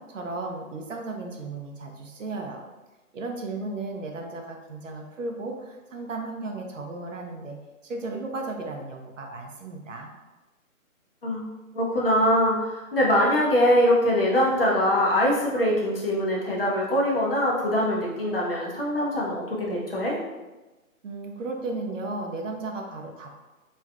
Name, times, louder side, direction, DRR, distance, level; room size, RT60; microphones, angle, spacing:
voice 1, 0.0-2.6 3.1-10.1 21.0-23.3, right 3 dB, 60° right, 3 dB, 0.5 m, -35 dB
voice 2, 11.7-20.2, equal, 40° left, -4 dB, 0.6 m, -23 dB
3.1 x 2.4 x 2.3 m, 1.1 s
hypercardioid pair, 170°, 43 cm